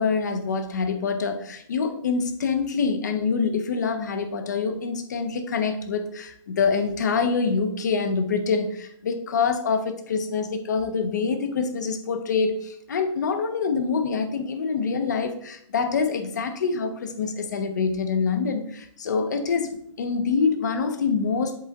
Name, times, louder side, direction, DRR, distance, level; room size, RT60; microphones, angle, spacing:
voice 1, 0.0-21.6, left 5 dB, 35° left, 8 dB, 0.6 m, -25 dB
7.4 x 3.7 x 3.4 m, 0.68 s
hypercardioid pair, 170°, 16 cm